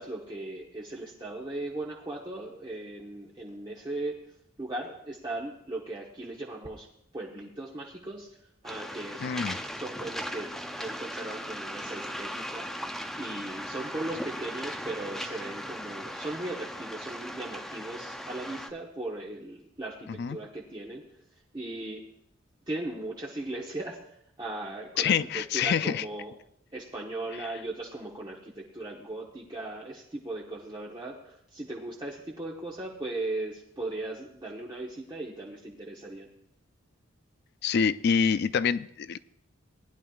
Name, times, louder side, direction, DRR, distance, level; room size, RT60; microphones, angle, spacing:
voice 1, 0.0-4.1 4.6-6.9 7.1-8.3 8.6-9.2 9.7-10.5 10.8-12.9 13.2-21.0 21.5-22.0 22.7-24.0 24.4-26.4 26.7-36.3, right 2 dB, 20° right, -3 dB, 1.0 m, -38 dB
Waves surf, 8.6-18.7, equal, ahead, 0.6 m, -38 dB
voice 2, 9.2-9.6 20.2-20.4 25.0-26.0 37.6-39.2, left 6 dB, 55° left, 15 dB, 0.4 m, -26 dB
19.0 x 10.5 x 2.4 m, 0.74 s
head